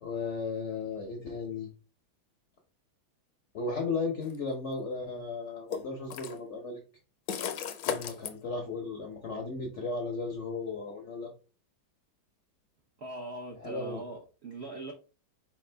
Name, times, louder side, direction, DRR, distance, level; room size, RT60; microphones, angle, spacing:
voice 1, 0.0-1.7 3.5-6.8 7.9-11.3 13.6-14.0, left 4 dB, 60° left, 2 dB, 0.7 m, -35 dB
sound 1, 4.2-4.4 5.7-6.4 7.3-8.3, left 8 dB, 75° left, 1.3 m, -35 dB
voice 2, 13.0-14.9, right 2 dB, 70° right, 1 dB, 0.6 m, -41 dB
4.6 x 3.5 x 3.3 m, 0.34 s
omnidirectional pair, 2.2 m